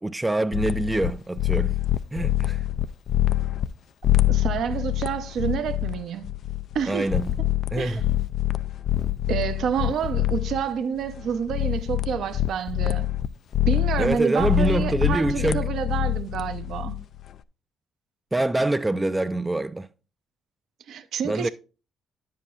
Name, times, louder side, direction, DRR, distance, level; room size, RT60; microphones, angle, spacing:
voice 1, 0.0-1.8 2.1-2.6 6.9-7.4 7.7-8.0 14.0-15.6 18.3-19.9 21.2-21.5, right 2 dB, 15° right, 0.4 m, -25 dB
sound 1, 0.5-1.1 1.4-3.7 4.0-10.7 11.0-13.3 13.5-17.3, left 13 dB, 65° left, 0.3 m, -25 dB
voice 2, 4.3-6.3 6.7-7.1 7.8-8.0 9.3-13.1 13.7-17.0 20.9-21.5, right 8 dB, 70° right, 0.8 m, -28 dB
9.5 x 7.5 x 2.5 m
supercardioid pair, 75°, 0 cm